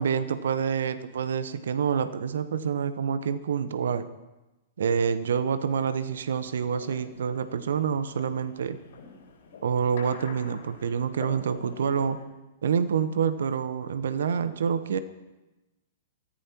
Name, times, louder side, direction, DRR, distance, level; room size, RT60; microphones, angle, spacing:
voice 1, 0.0-4.1 4.8-8.8 9.6-12.2 12.6-15.0, right 7 dB, 65° right, 12 dB, 1.0 m, -27 dB
sound 1, 6.0-12.2, left 5 dB, 65° left, 4.9 m, -47 dB
23.5 x 14.5 x 3.0 m, 1.1 s
figure-of-eight pair, 105°, 0 cm